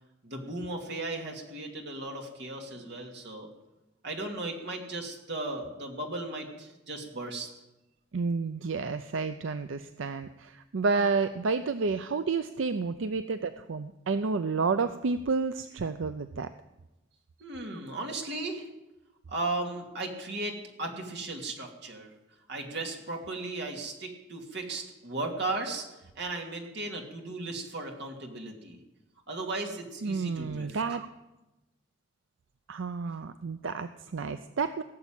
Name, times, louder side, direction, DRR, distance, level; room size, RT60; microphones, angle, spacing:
voice 1, 0.2-3.5 4.0-7.5 17.4-18.7 19.3-22.1 22.5-28.8 29.3-30.8, right 2 dB, 60° right, 2 dB, 2.6 m, -36 dB
voice 2, 8.1-16.5 17.7-17.8 30.0-31.1 32.7-34.8, right 4 dB, 85° right, 10 dB, 0.5 m, -30 dB
18.0 x 7.2 x 8.9 m, 1.0 s
head